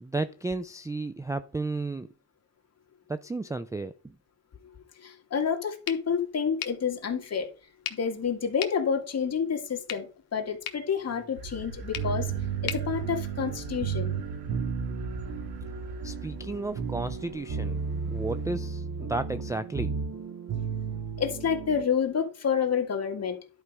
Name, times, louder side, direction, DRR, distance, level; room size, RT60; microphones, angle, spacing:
voice 1, 0.0-2.1 3.1-4.2 16.0-17.8 18.1-20.0, right 3 dB, 10° right, 0.4 m, -33 dB
voice 2, 5.0-7.5 7.9-12.3 12.6-14.2 21.2-23.4, left 7 dB, 40° left, 2.1 m, -29 dB
sound 1, 5.8-13.9, left 11 dB, 70° left, 1.4 m, -42 dB
sound 2, 11.3-18.6, right 4 dB, 80° right, 2.3 m, -43 dB
sound 3, 11.9-21.8, right 6 dB, 55° right, 2.1 m, -33 dB
11.0 x 4.8 x 5.4 m
cardioid pair, 105°, 38 cm